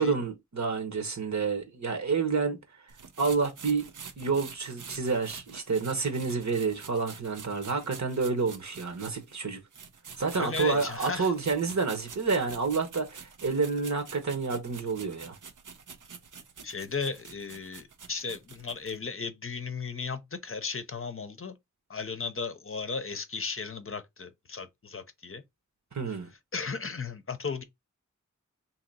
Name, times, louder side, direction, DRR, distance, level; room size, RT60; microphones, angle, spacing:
voice 1, 0.0-2.6 3.2-3.9 4.2-9.6 10.2-15.4 25.9-26.3, right 4 dB, 65° right, 1.0 m, -29 dB
sound 1, 2.9-9.3 9.7-19.0, right 6 dB, 90° right, 0.6 m, -47 dB
voice 2, 10.3-11.3 16.6-21.5 21.9-25.4 26.5-27.6, left 4 dB, 45° left, 0.6 m, -35 dB
2.9 x 2.8 x 4.0 m
wide cardioid pair, 45°, 30 cm